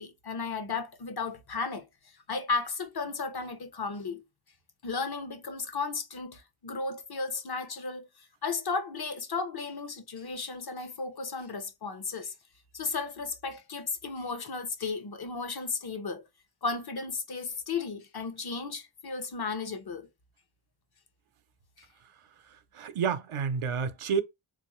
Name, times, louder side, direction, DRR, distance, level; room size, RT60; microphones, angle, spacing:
voice 1, 0.0-1.9 2.3-4.2 4.8-8.1 8.4-12.3 12.7-16.3 16.6-20.1, left 4 dB, 50° left, 0.7 m, -34 dB
voice 2, 22.5-24.2, right 6 dB, 85° right, 0.7 m, -30 dB
3.8 x 2.5 x 3.0 m
wide cardioid pair, 75°, 48 cm